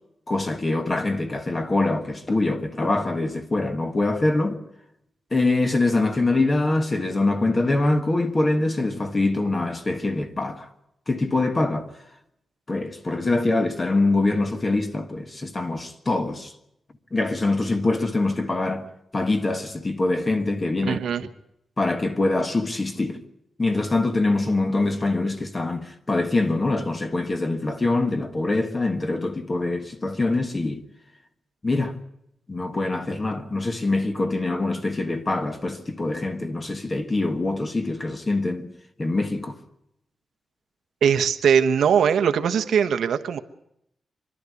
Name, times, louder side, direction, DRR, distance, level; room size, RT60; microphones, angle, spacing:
voice 1, 0.3-4.6 5.3-10.7 11.1-11.9 12.7-16.5 17.1-18.9 19.1-21.0 21.8-23.2 23.6-30.8 31.6-32.0 32.5-38.7 39.0-39.6, left 2 dB, 20° left, 1.5 m, -24 dB
voice 2, 20.8-21.3 41.0-43.4, right 7 dB, 85° right, 1.1 m, -21 dB
25.0 x 12.0 x 9.6 m
wide cardioid pair, 170°, 0 cm